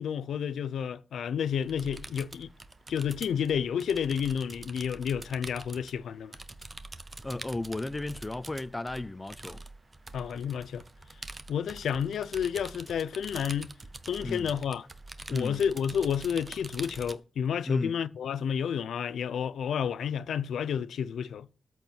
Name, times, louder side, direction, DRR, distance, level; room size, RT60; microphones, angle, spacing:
voice 1, 0.0-2.5 2.9-6.4 10.1-10.8 11.5-13.7 14.1-14.9 15.3-21.5, left 8 dB, 80° left, 0.6 m, -30 dB
sound 1, 1.5-17.1, right 2 dB, 20° right, 0.9 m, -46 dB
voice 2, 7.2-9.6 14.2-14.5 15.3-15.6 17.7-18.0, left 2 dB, 15° left, 0.5 m, -34 dB
13.5 x 4.5 x 7.5 m
wide cardioid pair, 135°, 0 cm